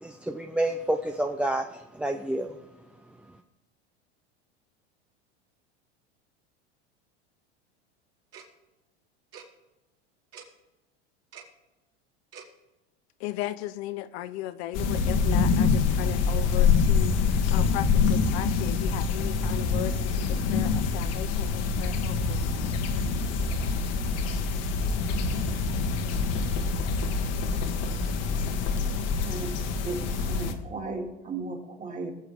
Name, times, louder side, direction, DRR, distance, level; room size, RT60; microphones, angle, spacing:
voice 1, 0.0-1.6 2.0-2.5, right 1 dB, 5° right, 5 dB, 0.4 m, -28 dB
Tick-tock, 8.3-8.5 9.3-9.4 10.3-10.4 11.3-11.5 12.3-12.5, right 7 dB, 45° right, 2.6 m, -45 dB
voice 2, 13.2-17.2 17.5-22.7, left 14 dB, 65° left, 13 dB, 0.6 m, -36 dB
sound 1, 14.7-30.5, left 5 dB, 50° left, 1.4 m, -26 dB
voice 3, 29.2-29.5 29.8-32.1, right 3 dB, 25° right, 1 dB, 2.3 m, -35 dB
22.0 x 7.4 x 3.4 m, 1.1 s
hypercardioid pair, 100°, 34 cm